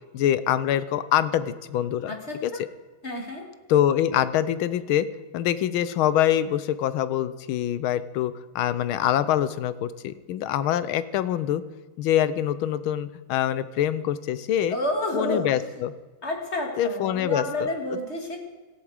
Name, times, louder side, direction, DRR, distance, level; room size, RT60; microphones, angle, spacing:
voice 1, 0.1-2.1 2.4-2.5 3.7-5.1 5.3-11.6 12.0-14.8 15.1-15.9 16.8-17.4, left 11 dB, 85° left, 15 dB, 1.6 m, -24 dB
voice 2, 2.1-2.6 3.0-3.5 14.7-15.7 16.2-18.4, left 1 dB, 35° left, 2 dB, 2.5 m, -30 dB
17.5 x 14.0 x 4.9 m, 1.3 s
omnidirectional pair, 2.2 m